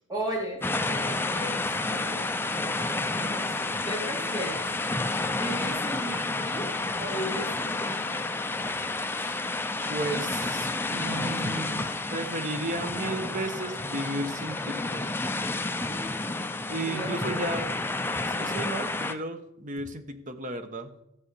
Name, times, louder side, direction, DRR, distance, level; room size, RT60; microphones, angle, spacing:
voice 1, 0.1-1.6 1.9-4.6 5.4-6.7 7.0-8.3 8.7-8.9 11.8-12.0 15.7-16.2 16.7-17.5, right 1 dB, 15° right, -3 dB, 3.6 m, -37 dB
sound 1, 0.6-19.1, left 2 dB, 10° left, 0.5 m, -30 dB
voice 2, 9.9-15.1 16.7-17.7 18.3-20.9, right 2 dB, 35° right, 8 dB, 1.1 m, -34 dB
14.5 x 5.2 x 8.3 m, 0.89 s
head